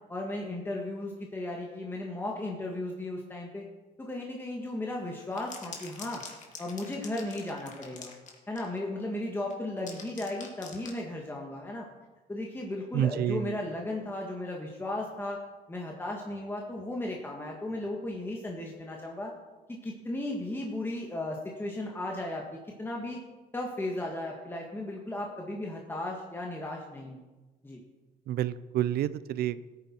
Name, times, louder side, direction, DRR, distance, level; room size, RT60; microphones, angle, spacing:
voice 1, 0.1-3.6 4.0-6.2 6.6-8.1 8.5-11.9 12.3-15.4 15.7-19.3 19.7-23.2 23.5-27.2 27.6-27.8, left 1 dB, 15° left, -1 dB, 1.7 m, -35 dB
sound 1, 5.2-8.8 9.5-11.0, left 5 dB, 45° left, 2.4 m, -45 dB
voice 2, 12.9-13.6 28.3-29.6, right 11 dB, 65° right, 16 dB, 0.5 m, -29 dB
16.0 x 9.5 x 4.5 m, 1.2 s
cardioid pair, 110°, 17 cm